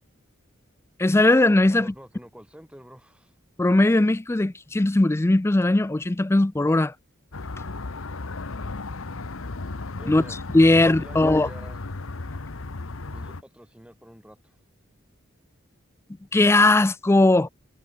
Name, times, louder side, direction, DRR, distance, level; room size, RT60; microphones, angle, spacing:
voice 1, 1.0-1.9 3.6-6.9 10.1-10.2 10.5-11.5 16.3-17.5, left 2 dB, 15° left, 0.4 m, -19 dB
voice 2, 1.7-3.3 10.0-10.4 10.7-11.8 13.1-14.6, equal, 5° right, 5.2 m, -46 dB
sound 1, 7.3-13.4, left 3 dB, 80° left, 1.1 m, -35 dB
head